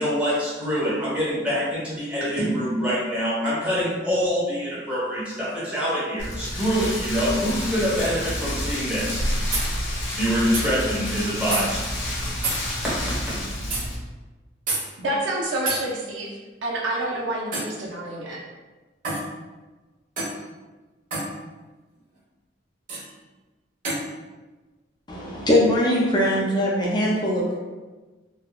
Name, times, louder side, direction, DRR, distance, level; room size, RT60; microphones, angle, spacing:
voice 1, 0.0-9.2 10.1-11.8, equal, 5° right, -9 dB, 1.1 m, -25 dB
Rain, 6.2-13.9, left 1 dB, 75° left, 0.7 m, -29 dB
sound 1, 9.5-9.7 10.5-10.7 11.5-11.6 12.4-12.6 13.7-13.8 14.7-14.8 15.7-15.8 17.5-17.8 19.0-19.3 20.2-20.4 21.1-21.3 22.9-23.0 23.8-24.0, right 2 dB, 45° right, 1.0 m, -27 dB
voice 2, 15.0-18.4, right 1 dB, 80° right, -3 dB, 0.6 m, -28 dB
voice 3, 25.1-27.6, left 1 dB, 25° left, -4 dB, 0.5 m, -21 dB
3.3 x 2.2 x 2.3 m, 1.2 s
head